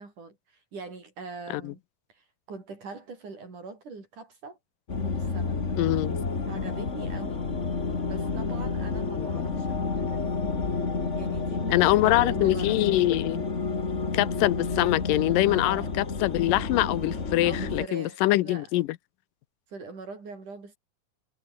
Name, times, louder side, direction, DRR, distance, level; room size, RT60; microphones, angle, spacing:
voice 1, 0.0-1.8 2.1-4.6 5.0-5.6 6.5-7.5 8.0-10.2 11.1-13.0 15.5-15.9 17.4-18.7 19.7-20.8, right 4 dB, 70° right, 8.1 m, -42 dB
sound 1, 4.9-17.9, left 4 dB, 25° left, 2.1 m, -30 dB
voice 2, 5.8-6.2 9.2-9.5 11.7-13.4 14.1-18.9, left 17 dB, 90° left, 2.5 m, -24 dB
omnidirectional pair, 3.8 m